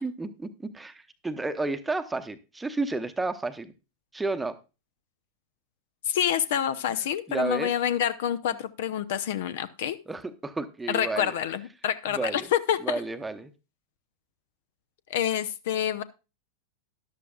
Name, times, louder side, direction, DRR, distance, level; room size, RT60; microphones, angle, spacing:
voice 1, 0.0-3.7 4.1-4.6 7.3-7.7 10.1-11.3 12.1-12.5 12.8-13.5, right 3 dB, 10° right, 0.9 m, -31 dB
voice 2, 6.1-10.0 10.9-13.0 15.1-16.0, left 10 dB, 55° left, 0.6 m, -27 dB
13.0 x 11.0 x 2.4 m
figure-of-eight pair, 90°, 0 cm